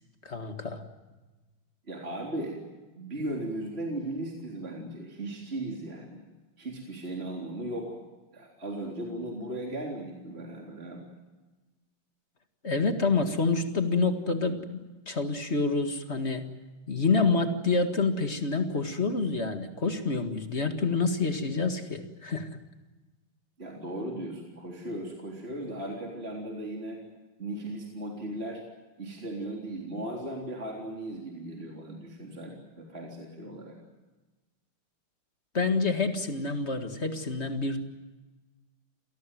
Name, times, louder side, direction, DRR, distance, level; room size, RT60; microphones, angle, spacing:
voice 1, 0.2-0.8 12.6-16.4 16.9-22.5 35.5-37.8, left 3 dB, 30° left, 7 dB, 2.0 m, -27 dB
voice 2, 1.9-2.6 2.9-6.2 6.6-8.0 8.3-11.1 23.6-27.0 27.4-28.6 29.0-33.8, right 1 dB, 25° right, -1 dB, 3.9 m, -37 dB
28.0 x 18.5 x 9.3 m, 1.2 s
omnidirectional pair, 2.4 m